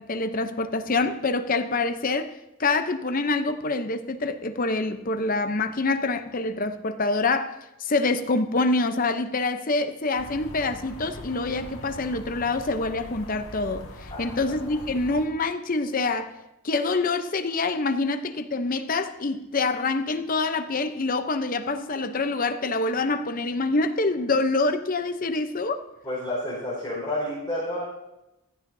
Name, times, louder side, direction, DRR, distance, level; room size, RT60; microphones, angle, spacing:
voice 1, 0.0-2.3 2.6-7.5 7.8-16.3 16.6-25.9, left 3 dB, 40° left, 9 dB, 0.7 m, -26 dB
sound 1, 10.2-15.3, left 1 dB, 90° left, 1.8 m, -42 dB
voice 2, 14.1-14.6 26.0-27.8, left 1 dB, 15° left, -10 dB, 4.7 m, -30 dB
15.5 x 13.5 x 2.7 m, 0.94 s
head